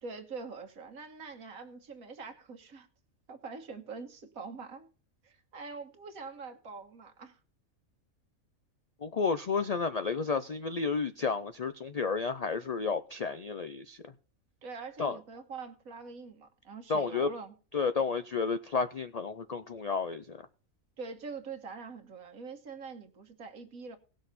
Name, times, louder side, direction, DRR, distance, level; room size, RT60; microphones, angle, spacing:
voice 1, 0.0-2.9 3.3-4.9 5.2-7.4 14.6-17.5 21.0-24.0, right 4 dB, 80° right, 1.8 m, -44 dB
voice 2, 9.0-14.0 15.0-15.2 16.9-17.3 17.7-20.4, left 5 dB, 70° left, 0.3 m, -31 dB
18.5 x 6.4 x 4.1 m
omnidirectional pair, 1.5 m